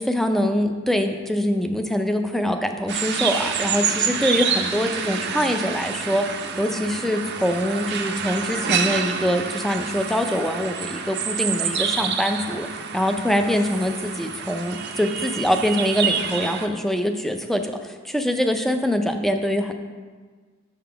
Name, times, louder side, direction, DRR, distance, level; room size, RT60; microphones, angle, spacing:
voice 1, 0.0-6.2 6.6-19.7, equal, ahead, 6 dB, 0.4 m, -24 dB
sound 1, 2.9-16.7, right 6 dB, 55° right, 0.5 m, -27 dB
7.5 x 3.7 x 5.8 m, 1.5 s
head